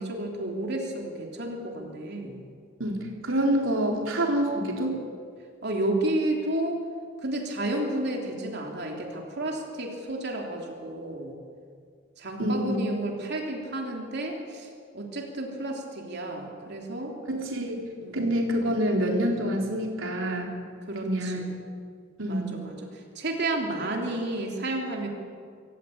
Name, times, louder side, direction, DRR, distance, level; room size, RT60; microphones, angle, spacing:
voice 1, 0.0-2.4 5.6-6.8 7.2-11.3 12.2-17.2 18.0-18.2 20.9-21.4 22.3-25.1, right 1 dB, 55° right, 1 dB, 3.3 m, -31 dB
voice 2, 2.8-5.0 12.4-12.8 17.3-20.5 21.0-21.4 22.2-22.6, right 1 dB, 80° right, 0 dB, 4.1 m, -27 dB
25.5 x 14.5 x 8.7 m, 2.2 s
head